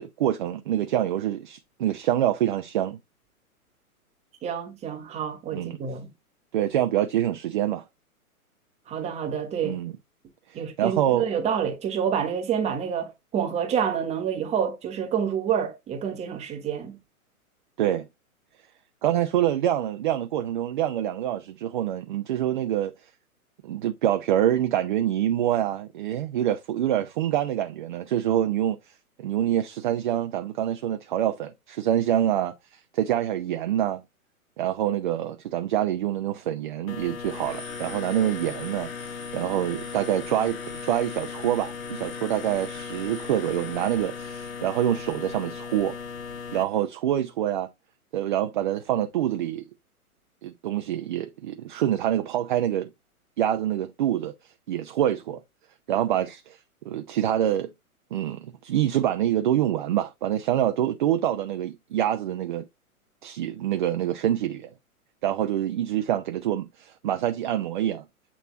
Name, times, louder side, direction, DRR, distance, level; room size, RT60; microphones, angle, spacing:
voice 1, 0.0-3.0 5.5-5.8 6.5-7.8 9.6-9.9 10.5-11.3 17.8-18.1 19.0-22.9 23.6-28.8 29.2-34.0 34.6-46.0 46.5-47.7 48.1-49.6 50.4-52.9 53.4-54.3 54.7-55.4 55.9-56.6 56.9-57.7 58.1-62.6 63.2-64.7 65.2-68.0, right 11 dB, 35° right, 0.6 m, -26 dB
voice 2, 4.4-6.1 8.9-9.8 10.5-17.0, right 8 dB, 15° right, 1.2 m, -28 dB
sound 1, 36.9-46.6, left 5 dB, 65° left, 1.5 m, -37 dB
8.5 x 3.3 x 3.8 m
figure-of-eight pair, 115°, 44 cm